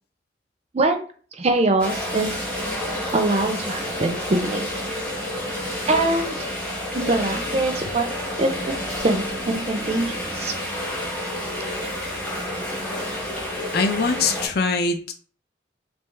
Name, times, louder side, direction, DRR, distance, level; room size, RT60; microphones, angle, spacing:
voice 1, 0.7-1.0 1.3-2.4 3.1-4.7 5.9-6.5 6.9-8.1 8.4-8.8 9.0-10.5 11.8-11.9, right 2 dB, 35° right, 6 dB, 0.5 m, -23 dB
sound 1, 1.8-14.5, left 1 dB, 5° left, 1.0 m, -29 dB
voice 2, 13.7-15.1, left 4 dB, 55° left, 5 dB, 0.6 m, -22 dB
3.4 x 2.8 x 3.1 m, 0.43 s
head